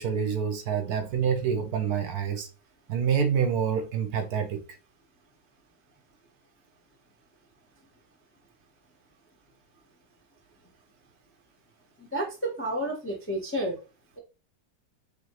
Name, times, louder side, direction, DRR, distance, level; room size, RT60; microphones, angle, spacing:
voice 1, 0.0-2.5 2.9-4.6, right 7 dB, 70° right, 1.1 m, -27 dB
voice 2, 12.0-13.8, right 1 dB, 15° left, 0.4 m, -30 dB
4.8 x 2.8 x 2.9 m
omnidirectional pair, 1.9 m